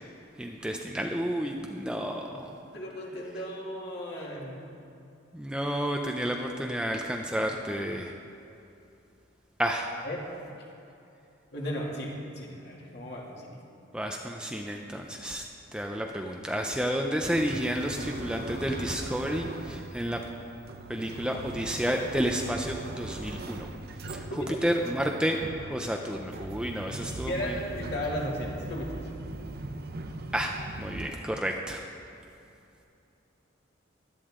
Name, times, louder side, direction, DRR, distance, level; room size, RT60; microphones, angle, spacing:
voice 1, 0.4-2.5 5.3-8.1 9.6-9.9 13.9-15.4 15.7-20.2 20.9-23.7 24.1-24.3 24.6-25.4 25.7-27.6 30.3-31.8, equal, 5° right, 1 dB, 0.6 m, -31 dB
voice 2, 1.9-4.6 10.0-10.3 11.5-13.6 24.3-24.6 27.3-29.0, equal, 55° left, -3 dB, 2.5 m, -36 dB
sound 1, 17.3-31.1, right 2 dB, 50° right, 0.7 m, -40 dB
16.5 x 12.0 x 3.7 m, 2.7 s
head